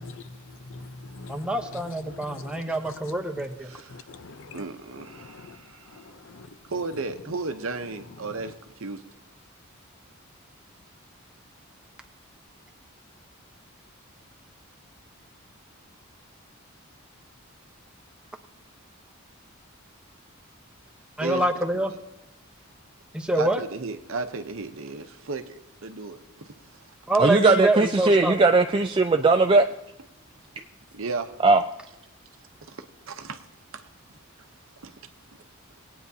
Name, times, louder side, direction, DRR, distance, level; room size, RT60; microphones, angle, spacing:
voice 1, 0.0-2.6 2.9-3.0 3.9-4.6 4.9-5.6 5.9-6.5 8.2-8.5, left 3 dB, 60° left, 0.6 m, -44 dB
voice 2, 1.3-3.7 21.2-21.9 23.1-23.6 27.1-28.4, right 1 dB, 5° right, 0.9 m, -26 dB
voice 3, 4.5-5.9 6.7-8.5 8.8-9.0 21.2-21.4 23.3-25.6 25.8-26.5 30.9-31.3 32.7-33.4 33.7-33.9 34.8-34.9, right 3 dB, 70° right, 0.8 m, -34 dB
voice 4, 27.2-29.7 31.4-31.6, right 3 dB, 25° right, 0.3 m, -18 dB
20.0 x 9.3 x 2.8 m
head